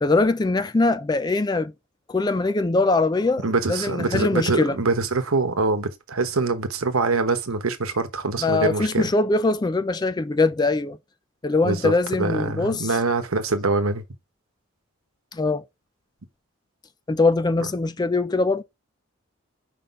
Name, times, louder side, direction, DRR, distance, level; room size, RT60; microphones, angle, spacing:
voice 1, 0.0-1.7 2.1-4.8 8.4-11.0 11.4-13.0 15.3-15.6 17.1-18.6, left 3 dB, 20° left, 0.3 m, -22 dB
voice 2, 3.4-9.1 11.6-14.0, right 3 dB, 90° right, 1.1 m, -24 dB
5.2 x 3.9 x 5.3 m
head